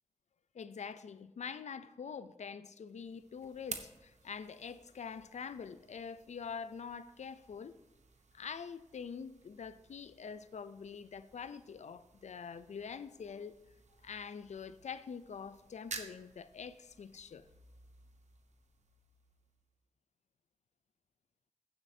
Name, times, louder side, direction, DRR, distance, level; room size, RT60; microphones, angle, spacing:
voice 1, 0.5-7.8 8.3-13.6 14.0-17.5, left 6 dB, 90° left, 0.4 m, -45 dB
sound 1, 2.8-19.8, right 4 dB, 90° right, 0.8 m, -53 dB
15.5 x 7.4 x 2.7 m
cardioid pair, 40°, 12 cm